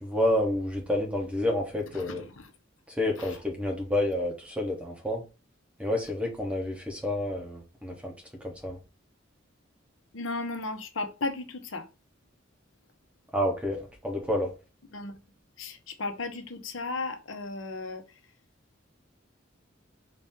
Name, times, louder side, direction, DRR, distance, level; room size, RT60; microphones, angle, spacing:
voice 1, 0.0-2.2 2.9-5.2 5.8-8.1 8.4-8.8 13.3-14.5, left 1 dB, 5° right, 1.0 m, -29 dB
voice 2, 1.9-2.5 3.2-3.3 10.1-11.8 14.9-15.2 15.6-18.0, left 3 dB, 80° left, 0.9 m, -35 dB
4.2 x 2.8 x 3.5 m
head